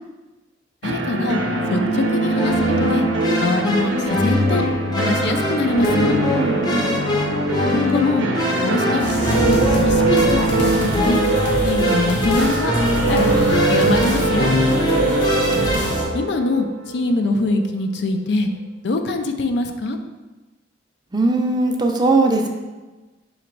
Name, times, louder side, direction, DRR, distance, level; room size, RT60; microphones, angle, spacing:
voice 1, 0.8-1.4 1.7-3.0 3.4-4.6 5.0-6.2 7.7-8.3 8.6-11.2 11.6-12.7 13.1-14.5 16.1-18.5 18.8-20.0, left 2 dB, 65° left, 6 dB, 0.4 m, -23 dB
sound 1, 0.8-17.6, right 2 dB, 90° right, 0.6 m, -22 dB
sound 2, 2.3-16.1, left 1 dB, 25° left, 0.6 m, -24 dB
voice 2, 6.4-6.9 21.1-22.5, right 2 dB, 25° right, 2 dB, 0.4 m, -19 dB
sound 3, 9.0-16.0, equal, 85° left, 1.0 m, -26 dB
3.9 x 3.0 x 4.5 m, 1.2 s
head